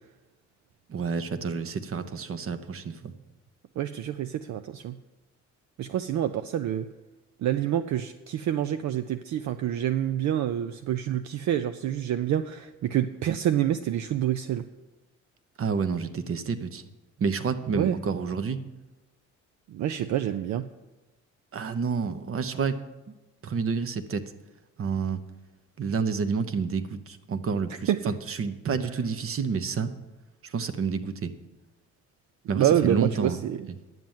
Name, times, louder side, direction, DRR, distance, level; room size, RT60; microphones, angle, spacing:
voice 1, 0.9-3.1 15.6-16.8 17.2-18.6 21.5-22.8 23.4-24.2 24.8-25.2 25.8-29.9 30.4-31.3 32.5-33.4, right 5 dB, 45° right, 11 dB, 1.0 m, -29 dB
voice 2, 3.8-5.0 5.8-6.9 7.4-14.7 17.8-18.0 19.7-20.7 27.9-28.0 32.5-33.7, right 11 dB, 70° right, 10 dB, 0.5 m, -27 dB
11.0 x 7.7 x 7.2 m, 1.1 s
cardioid pair, 90°, 30 cm